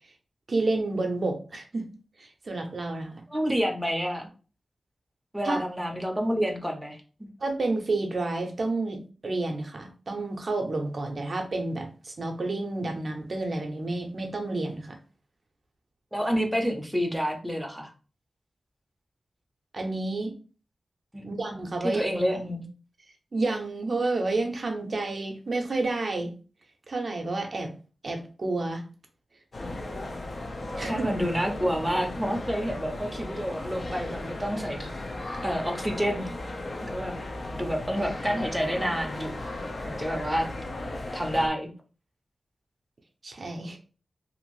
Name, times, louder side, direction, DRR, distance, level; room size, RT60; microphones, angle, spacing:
voice 1, 0.5-1.9 2.2-3.2 5.4-5.7 7.4-15.0 19.7-20.3 21.2-22.0 23.3-26.3 26.9-27.7 28.0-28.9 30.8-31.0 43.2-43.8, right 2 dB, 55° right, 3 dB, 0.5 m, -30 dB
voice 2, 3.3-4.3 5.3-7.3 16.1-17.9 21.1-21.3 21.8-22.7 30.8-34.9 35.4-36.3 36.8-37.2 37.5-39.4 39.8-40.5 41.1-41.7, equal, 5° right, 2 dB, 0.6 m, -28 dB
sound 1, 29.5-41.5, left 2 dB, 50° left, 0.6 m, -36 dB
2.6 x 2.5 x 3.0 m, 0.36 s
wide cardioid pair, 85°, 0 cm